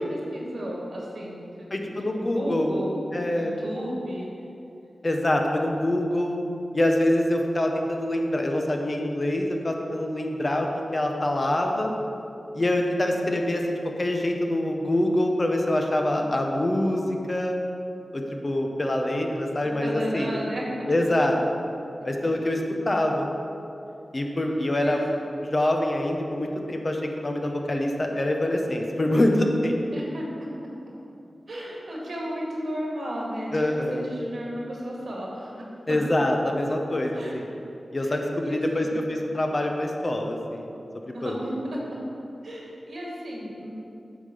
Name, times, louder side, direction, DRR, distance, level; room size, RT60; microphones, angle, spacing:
voice 1, 0.1-1.9 2.2-3.0 3.3-4.3 19.8-21.0 24.8-25.0 29.9-30.3 31.5-36.0 37.1-37.4 38.0-38.9 41.1-42.0 42.4-43.7, equal, 75° right, -3 dB, 1.9 m, -34 dB
voice 2, 1.7-2.7 3.1-3.5 5.0-6.4 6.7-11.9 12.5-17.6 18.1-20.4 20.9-21.4 22.0-23.3 24.1-25.1 25.5-29.8 33.5-34.1 35.9-37.5 37.9-40.7 41.1-41.4, left 1 dB, 45° left, 2 dB, 0.9 m, -25 dB
8.1 x 3.7 x 6.7 m, 2.7 s
cardioid pair, 45°, 0 cm